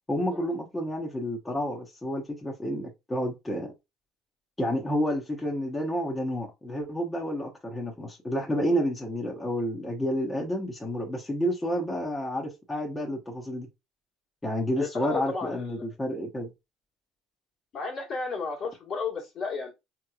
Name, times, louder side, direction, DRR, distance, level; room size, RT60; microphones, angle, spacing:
voice 1, 0.1-3.7 4.6-13.7 14.4-16.5, equal, 15° left, 0.9 m, -30 dB
voice 2, 14.8-15.9 17.7-19.7, left 4 dB, 50° left, 1.5 m, -33 dB
3.6 x 3.0 x 2.3 m
hypercardioid pair, 75°, 0 cm